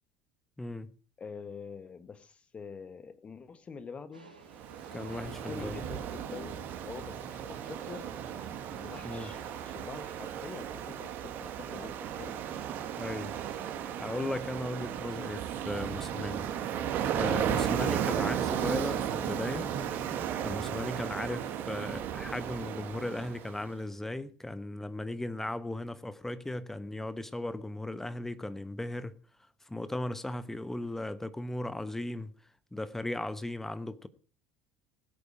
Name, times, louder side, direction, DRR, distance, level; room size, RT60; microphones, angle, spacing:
voice 1, 0.6-0.9 4.9-5.8 9.0-9.3 13.0-13.3 14.0-16.4 17.1-19.7 20.4-29.1 29.7-32.3 32.7-34.1, left 1 dB, 10° left, 1.1 m, -36 dB
voice 2, 1.2-4.3 5.2-8.1 8.6-12.5 17.7-17.8, left 5 dB, 25° left, 1.6 m, -46 dB
sound 1, 4.1-9.9, right 2 dB, 90° right, 3.6 m, -55 dB
Ocean, 4.5-23.6, right 9 dB, 45° right, 1.9 m, -35 dB
19.0 x 8.5 x 4.8 m
figure-of-eight pair, 65°, 4 cm